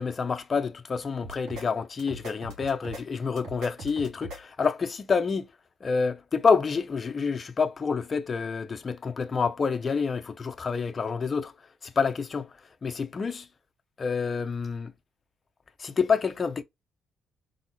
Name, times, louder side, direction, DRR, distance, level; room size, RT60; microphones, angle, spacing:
voice 1, 0.0-5.5 5.8-11.5 11.8-12.5 12.8-13.5 14.0-14.9 15.8-16.6, left 5 dB, 30° left, 0.5 m, -28 dB
sound 1, 1.2-1.6 2.0-3.0 3.4-4.4, right 1 dB, 85° right, 3.1 m, -40 dB
4.0 x 3.9 x 2.9 m
cardioid pair, 140°, 0 cm